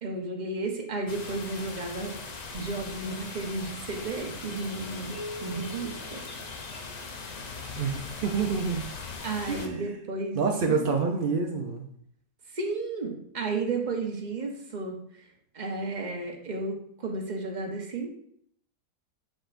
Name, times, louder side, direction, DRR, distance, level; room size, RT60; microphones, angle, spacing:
voice 1, 0.0-2.1 2.5-5.1 5.4-6.2 7.6-7.9 9.2-10.9 12.5-15.0 15.5-18.1, right 3 dB, 35° right, 2 dB, 0.9 m, -33 dB
sound 1, 1.1-9.7, left 4 dB, 65° left, 0.4 m, -40 dB
sound 2, 5.1-7.1, left 1 dB, 80° left, 2.3 m, -43 dB
voice 2, 7.8-8.9 9.5-9.9 10.3-11.8, right 5 dB, 70° right, 3 dB, 0.5 m, -28 dB
7.5 x 6.9 x 2.5 m, 0.66 s
omnidirectional pair, 1.8 m